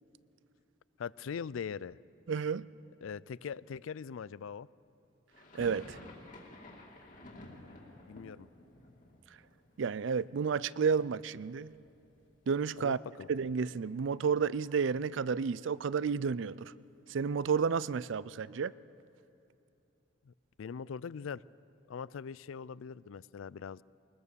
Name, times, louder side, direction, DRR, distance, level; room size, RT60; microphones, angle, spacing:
voice 1, 1.0-2.0 3.0-4.7 7.4-7.8 8.1-8.5 12.8-13.3 20.2-20.3 20.6-21.4 21.9-23.8, left 6 dB, 85° left, 21 dB, 0.4 m, -41 dB
voice 2, 2.3-2.7 5.5-6.0 9.8-11.7 12.5-13.0 13.3-16.7 17.1-18.7, right 6 dB, 70° right, 20 dB, 0.4 m, -31 dB
sound 1, 5.3-11.3 11.5-12.4 12.6-12.7 13.0-15.1, left 1 dB, 40° left, 2.7 m, -54 dB
22.0 x 20.5 x 6.9 m, 2.7 s
head